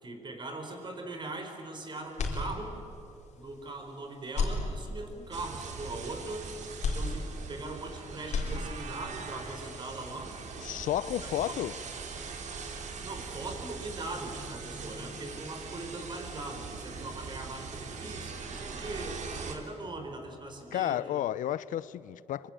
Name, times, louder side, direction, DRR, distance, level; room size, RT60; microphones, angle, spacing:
voice 1, 0.0-2.8 3.4-6.5 6.9-10.3 11.2-11.7 13.0-21.2, right 2 dB, 35° right, 4.4 m, -41 dB
sound 1, 2.1-3.1 3.5-3.6 4.2-5.3 6.8-7.9 8.2-9.1, left 3 dB, 60° left, 4.1 m, -33 dB
sound 2, 5.3-19.6, right 4 dB, 65° right, 3.1 m, -41 dB
voice 2, 10.6-11.8 20.7-22.5, left 12 dB, 85° left, 0.6 m, -32 dB
25.0 x 24.5 x 8.9 m
cardioid pair, 115°, 13 cm